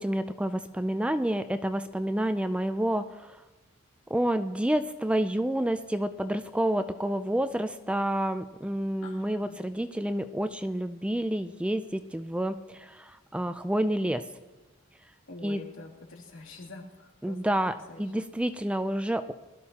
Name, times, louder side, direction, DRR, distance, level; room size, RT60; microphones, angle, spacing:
voice 1, 0.0-3.4 4.1-14.2 15.4-15.6 17.2-19.3, right 1 dB, 5° right, 10 dB, 0.4 m, -29 dB
voice 2, 9.0-9.7 15.3-17.4 17.9-18.3, left 2 dB, 80° left, -2 dB, 2.9 m, -46 dB
21.0 x 13.0 x 2.9 m, 1.2 s
head